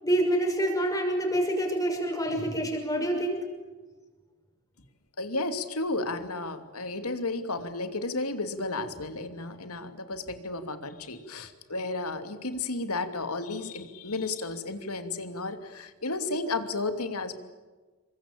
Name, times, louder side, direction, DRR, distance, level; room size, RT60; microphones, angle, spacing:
voice 1, 0.0-3.4, right 1 dB, 15° left, 3 dB, 6.3 m, -27 dB
voice 2, 5.2-17.3, left 3 dB, 90° left, 8 dB, 2.9 m, -33 dB
28.5 x 23.5 x 8.8 m, 1.3 s
head